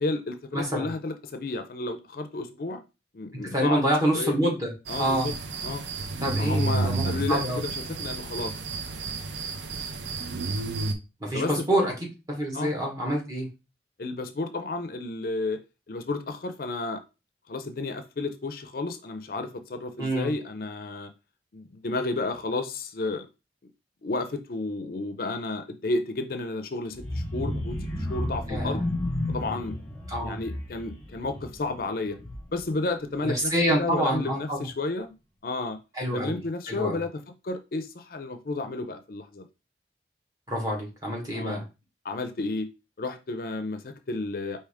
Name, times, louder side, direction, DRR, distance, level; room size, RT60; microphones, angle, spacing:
voice 1, 0.0-2.8 3.1-3.8 4.1-4.5 4.9-5.3 5.6-5.8 6.4-8.5 11.3-12.0 12.5-12.7 14.0-15.6 15.9-17.0 17.5-21.1 21.5-23.3 24.0-28.8 29.3-29.7 30.2-32.2 32.5-35.1 35.4-35.8 36.1-39.4 41.3-41.7 42.0-42.7 43.0-44.6, left 3 dB, 50° left, 8 dB, 0.4 m, -32 dB
voice 2, 0.5-0.9 3.5-4.7 5.0-5.3 6.2-7.0 7.3-7.6 11.2-11.9 12.3-13.5 20.0-20.3 28.5-28.8 30.1-30.4 33.2-34.7 36.0-36.4 36.7-37.0 40.5-41.6, right 1 dB, 20° right, -1 dB, 1.3 m, -26 dB
sound 1, 4.9-10.9, right 3 dB, 90° right, 0.6 m, -31 dB
sound 2, 26.9-32.7 33.1-33.4 33.7-33.8, left 1 dB, 10° left, 1.2 m, -32 dB
4.6 x 2.7 x 3.5 m, 0.28 s
head